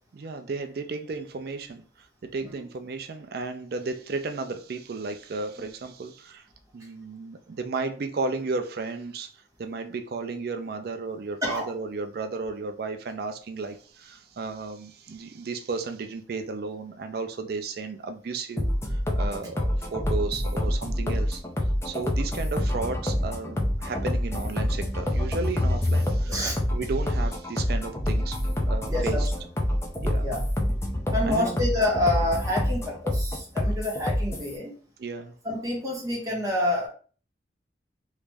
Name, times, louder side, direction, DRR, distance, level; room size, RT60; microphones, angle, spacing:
voice 1, 0.1-1.8 2.2-6.4 6.7-9.3 9.6-21.4 21.8-26.4 26.7-28.4 28.7-29.3 30.0-30.3 31.2-31.6 35.0-35.3, right 3 dB, 55° right, 0.4 m, -33 dB
sound 1, 18.6-34.5, left 1 dB, 15° left, 0.5 m, -27 dB
voice 2, 28.9-29.3 30.2-30.4 30.9-34.7 35.4-36.9, left 1 dB, 20° right, 1.1 m, -28 dB
3.1 x 2.5 x 3.3 m
head